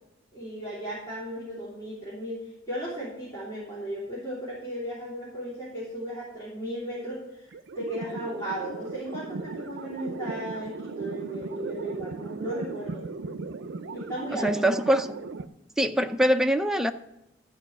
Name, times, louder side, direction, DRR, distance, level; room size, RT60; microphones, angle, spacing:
voice 1, 0.3-13.1 13.9-14.9, right 1 dB, 15° left, -9 dB, 3.3 m, -36 dB
sound 1, 7.5-15.5, right 3 dB, 65° right, 0.5 m, -37 dB
voice 2, 14.3-15.2 15.8-16.9, equal, 5° right, 6 dB, 0.5 m, -23 dB
13.5 x 4.9 x 6.1 m, 0.90 s
head